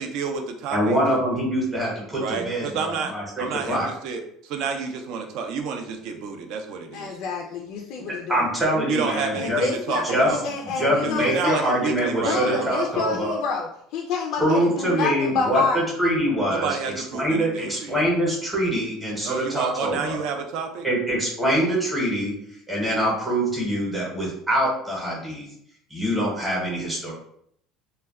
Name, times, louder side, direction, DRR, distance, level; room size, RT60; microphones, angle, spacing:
voice 1, 0.0-1.0 2.2-3.1 3.4-7.1 8.7-10.4 11.0-12.7 16.4-18.0 19.2-20.9, right 5 dB, 60° right, 5 dB, 0.4 m, -30 dB
voice 2, 0.7-3.9 8.3-9.6 10.0-10.3 10.6-13.4 14.4-16.8 17.1-20.2 20.8-22.3 22.7-25.5 25.9-27.1, equal, 5° right, -5 dB, 0.8 m, -24 dB
voice 3, 6.9-8.8 9.3-11.8 12.2-15.8, left 4 dB, 60° left, -1 dB, 0.3 m, -28 dB
2.2 x 2.1 x 3.4 m, 0.70 s
cardioid pair, 160°, 0 cm